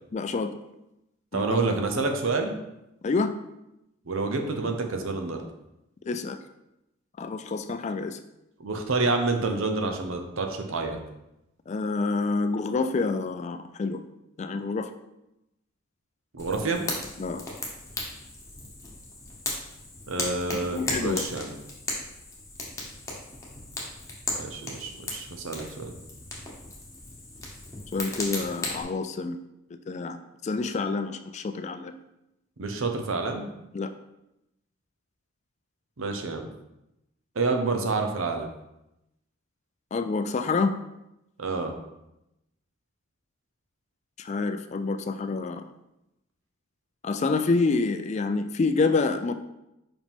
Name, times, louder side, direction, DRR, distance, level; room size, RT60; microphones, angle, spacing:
voice 1, 0.1-0.5 1.3-1.4 3.0-3.3 6.1-6.4 7.2-8.2 11.7-14.0 14.4-14.9 17.2-17.4 20.7-21.3 27.9-29.4 29.9-30.2 30.4-31.9 33.7-33.9 39.9-40.7 44.2-45.6 47.0-49.3, left 3 dB, 35° left, 9 dB, 0.3 m, -27 dB
voice 2, 1.3-2.5 4.0-5.4 8.6-11.0 16.3-16.8 20.1-21.5 24.3-25.9 32.6-33.5 36.0-36.5 37.3-38.5 41.4-41.7, right 3 dB, 80° right, 5 dB, 0.8 m, -28 dB
Fire, 16.4-28.8, left 2 dB, 15° left, 1.1 m, -36 dB
5.3 x 4.9 x 3.6 m, 0.89 s
head